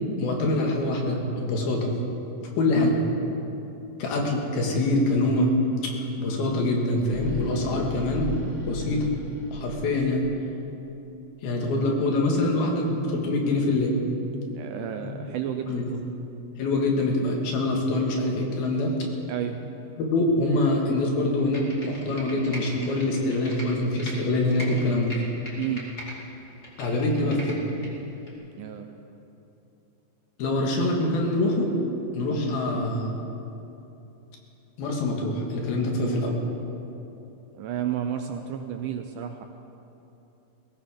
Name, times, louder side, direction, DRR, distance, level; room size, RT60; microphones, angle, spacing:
voice 1, 0.2-1.9 2.6-2.9 4.0-5.5 5.8-5.9 6.2-8.3 8.6-9.1 9.5-10.2 11.4-14.0 15.0-15.1 15.7-15.8 16.6-18.9 20.0-25.1 26.8-27.6 30.4-31.7 32.1-33.1 34.8-36.4, left 2 dB, 85° left, 0 dB, 3.8 m, -25 dB
sound 1, 6.9-10.2, left 2 dB, 40° left, 1.0 m, -36 dB
voice 2, 14.5-16.1 19.3-19.6 25.6-25.9 28.6-28.9 37.5-39.4, right 10 dB, 80° right, 6 dB, 1.9 m, -31 dB
Computer keyboard, 21.4-24.1 24.5-26.1 26.5-27.9 28.3-28.4, equal, 20° left, 2.2 m, -40 dB
20.5 x 16.0 x 3.7 m, 2.9 s
omnidirectional pair, 4.2 m